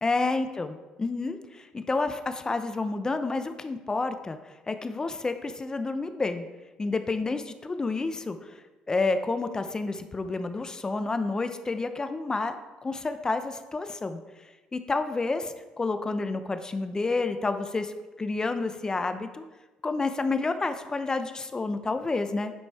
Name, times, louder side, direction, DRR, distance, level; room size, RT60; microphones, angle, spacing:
voice 1, 0.0-4.4 4.7-6.5 6.8-8.6 8.9-14.2 14.7-19.4 19.8-22.5, left 3 dB, 25° left, 9 dB, 0.7 m, -29 dB
9.6 x 5.3 x 4.2 m, 1.2 s
supercardioid pair, 80°, 3 cm